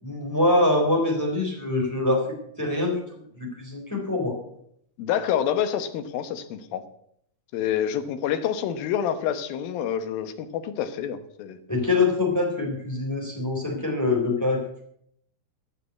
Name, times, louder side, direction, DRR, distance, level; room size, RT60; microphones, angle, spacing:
voice 1, 0.0-2.3 2.6-3.0 3.3-4.4 11.7-14.6, left 2 dB, 5° left, 0 dB, 3.2 m, -24 dB
voice 2, 5.0-6.8 7.5-11.6, left 9 dB, 70° left, 10 dB, 2.6 m, -27 dB
15.5 x 6.8 x 8.1 m, 0.71 s
omnidirectional pair, 4.6 m